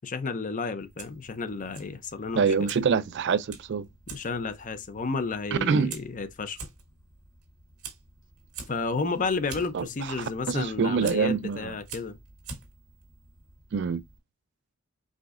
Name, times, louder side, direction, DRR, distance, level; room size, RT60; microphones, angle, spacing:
voice 1, 0.0-2.7 4.1-6.6 8.7-12.2, left 4 dB, 35° left, 0.5 m, -32 dB
Fire, 0.8-14.2, right 5 dB, 75° right, 1.7 m, -47 dB
voice 2, 2.4-3.9 5.5-5.9 9.7-9.9 10.5-11.7 13.7-14.0, right 5 dB, 50° right, 0.3 m, -25 dB
4.9 x 3.7 x 2.4 m
head